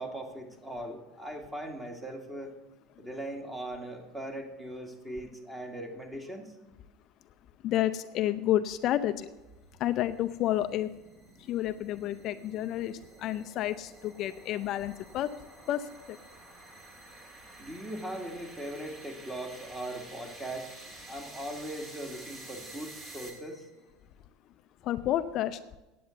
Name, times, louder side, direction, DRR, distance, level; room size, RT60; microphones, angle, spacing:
voice 1, 0.0-2.6 3.0-6.5 17.6-20.7 21.1-23.7, right 1 dB, 10° right, 3 dB, 2.2 m, -39 dB
voice 2, 7.6-9.3 9.8-10.9 11.5-15.3 15.7-16.2 24.8-25.6, left 13 dB, 50° left, 10 dB, 0.5 m, -30 dB
sound 1, 9.0-23.8, right 2 dB, 30° right, 2.6 m, -50 dB
9.6 x 8.6 x 7.8 m, 1.1 s
supercardioid pair, 125°, 0 cm